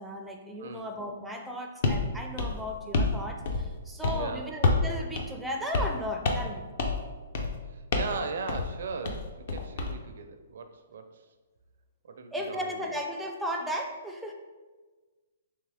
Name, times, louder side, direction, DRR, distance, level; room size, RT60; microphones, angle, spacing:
voice 1, 0.0-6.7 12.3-14.3, equal, 5° right, 1 dB, 0.4 m, -35 dB
sound 1, 1.8-2.0 2.4-3.2 3.5-3.8 4.0-4.2 4.6-4.9 5.2-5.3 5.7-6.0 6.2-6.5 6.8-7.0 7.3-7.6 7.9-8.2 8.5-8.7 9.0-9.9, left 3 dB, 55° left, 0.6 m, -27 dB
voice 2, 4.1-4.5 7.7-11.2 12.0-13.0, right 4 dB, 65° right, 7 dB, 0.4 m, -38 dB
3.5 x 3.3 x 3.4 m, 1.3 s
hypercardioid pair, 155°, 0 cm